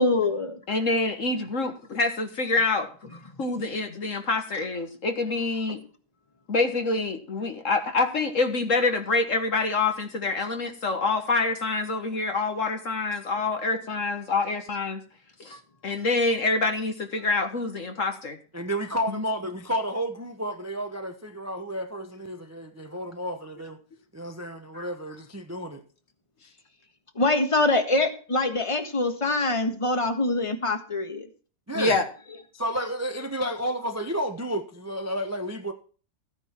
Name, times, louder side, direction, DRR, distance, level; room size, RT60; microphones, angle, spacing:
voice 1, 0.0-0.6 27.1-31.3, left 2 dB, 20° left, 1.5 m, -24 dB
voice 2, 0.7-3.1 3.4-5.8 6.5-15.0 15.4-18.3 19.1-19.2 24.7-24.9 31.7-32.1, left 3 dB, 50° left, 1.8 m, -26 dB
voice 3, 18.5-23.8 24.1-25.8 31.7-32.0 32.5-35.7, equal, 15° right, 0.8 m, -31 dB
14.5 x 9.7 x 4.4 m
omnidirectional pair, 1.7 m